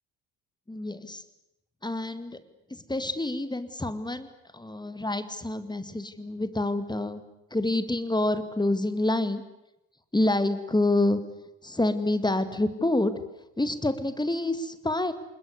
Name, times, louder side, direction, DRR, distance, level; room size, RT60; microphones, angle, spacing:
voice 1, 0.7-1.2 1.8-2.4 2.7-4.3 4.5-7.2 7.5-9.4 10.1-11.2 11.6-13.1 13.6-15.1, left 2 dB, 10° left, 11 dB, 2.2 m, -27 dB
26.0 x 20.5 x 8.2 m, 0.90 s
figure-of-eight pair, 50°, 50 cm